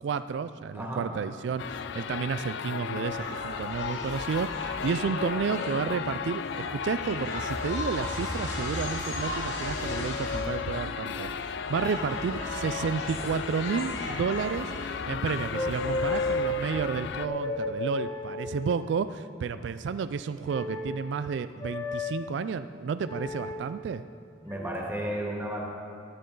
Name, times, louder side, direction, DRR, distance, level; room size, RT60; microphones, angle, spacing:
voice 1, 0.0-24.0, right 6 dB, 75° right, 12 dB, 0.3 m, -31 dB
sound 1, 1.6-17.3, left 6 dB, 75° left, 0.4 m, -35 dB
sound 2, 3.0-16.3, left 1 dB, 90° left, 2.9 m, -38 dB
sound 3, 15.5-16.7 17.2-18.9 20.4-21.0 21.6-22.1 23.0-23.6 24.5-24.8, left 2 dB, 20° left, 1.2 m, -32 dB
voice 2, 24.4-25.6, right 1 dB, 10° right, -3 dB, 1.9 m, -33 dB
14.0 x 11.5 x 3.9 m, 2.4 s
head